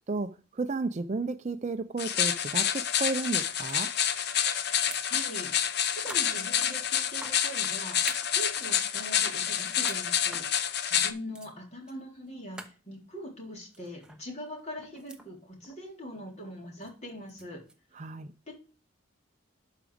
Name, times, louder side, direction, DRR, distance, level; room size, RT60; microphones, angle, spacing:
voice 1, 0.1-3.9 18.0-18.3, right 3 dB, 35° right, 0.5 m, -33 dB
sound 1, 2.0-11.1, left 9 dB, 55° left, 0.8 m, -28 dB
sound 2, 3.6-3.8 4.0-4.3 4.7-5.3 5.5-5.6 6.0-7.7 8.0-8.8 9.1-10.0 10.3-10.5 11.0-11.1 11.3-11.5 11.9-12.0 12.3-12.4 12.5-12.7 13.7-14.2 14.6-15.3 15.6-15.9 16.8-17.7, right 2 dB, 5° right, 0.8 m, -45 dB
voice 2, 4.7-5.5 5.9-17.6 18.5-18.6, equal, 35° left, 3.8 m, -42 dB
12.0 x 5.0 x 5.0 m
head